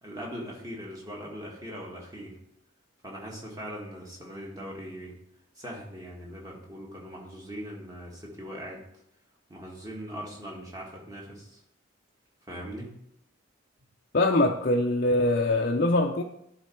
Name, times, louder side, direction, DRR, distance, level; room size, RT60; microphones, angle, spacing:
voice 1, 0.0-2.4 3.0-5.1 5.6-8.8 9.5-11.6 12.5-12.9, equal, 15° right, -2 dB, 1.7 m, -40 dB
voice 2, 14.1-16.2, left 2 dB, 45° left, 1 dB, 0.5 m, -23 dB
11.5 x 4.1 x 4.5 m, 0.75 s
head